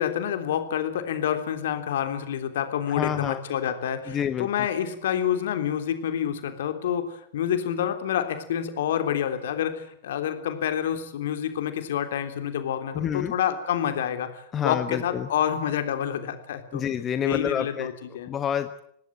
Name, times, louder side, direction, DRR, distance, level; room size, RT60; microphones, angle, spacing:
voice 1, 0.0-16.8 17.2-18.3, left 9 dB, 60° left, 8 dB, 3.3 m, -28 dB
voice 2, 2.9-3.4 4.1-4.5 12.9-13.3 14.5-15.3 16.7-17.9 18.3-18.8, left 9 dB, 25° left, 11 dB, 1.3 m, -28 dB
26.0 x 19.0 x 9.2 m, 0.70 s
figure-of-eight pair, 90°, 0 cm